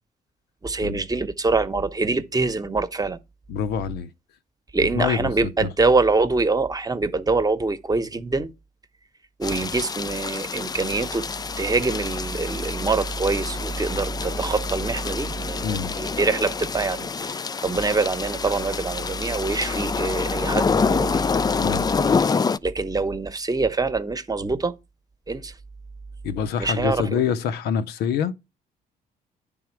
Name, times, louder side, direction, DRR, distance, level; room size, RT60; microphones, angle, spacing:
voice 1, 0.6-3.2 4.7-8.5 9.4-11.3 11.6-21.2 22.6-24.7 25.3-25.5 26.6-27.2, right 3 dB, 25° right, 0.9 m, -24 dB
voice 2, 3.5-4.1 4.9-5.7 15.6-15.9 21.6-21.9 26.2-28.3, left 7 dB, 85° left, 0.7 m, -26 dB
sound 1, 9.4-22.6, left 5 dB, 25° left, 0.4 m, -27 dB
10.5 x 3.6 x 4.5 m
cardioid pair, 75°, 16 cm